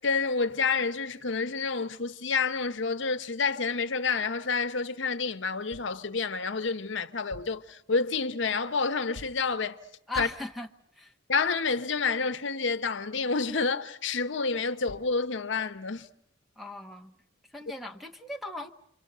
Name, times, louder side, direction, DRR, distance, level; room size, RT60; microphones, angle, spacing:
voice 1, 0.0-9.8 10.2-10.3 11.3-16.1, left 4 dB, 65° left, 0.9 m, -29 dB
sound 1, 5.7-6.0 7.1-7.7 9.1-9.5 10.1-10.5 14.6-14.7 14.9-15.2, left 1 dB, 60° right, 4.8 m, -47 dB
voice 2, 10.1-10.7 10.9-11.1 16.6-17.1 17.5-18.7, left 2 dB, ahead, 1.0 m, -38 dB
28.5 x 25.0 x 6.7 m
head